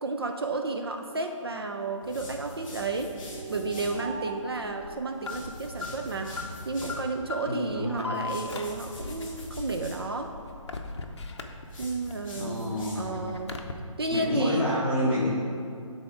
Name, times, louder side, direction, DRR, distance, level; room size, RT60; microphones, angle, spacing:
voice 1, 0.0-3.1 3.5-6.3 6.7-10.3 11.8-13.6 14.0-14.7, right 3 dB, 45° right, 4 dB, 0.5 m, -32 dB
sound 1, 2.0-4.0 5.1-7.0 8.1-10.0 11.6-13.2, left 1 dB, 10° left, 1.5 m, -43 dB
sound 2, 3.1-7.9, right 7 dB, 70° right, 0.9 m, -46 dB
Alarm, 3.9-12.1 12.5-13.7, left 3 dB, 55° left, 0.7 m, -39 dB
voice 2, 7.5-8.2 12.3-13.2 14.1-15.3, left 1 dB, 5° right, -10 dB, 0.7 m, -28 dB
10.0 x 4.1 x 4.8 m, 2.5 s
hypercardioid pair, 175°, 17 cm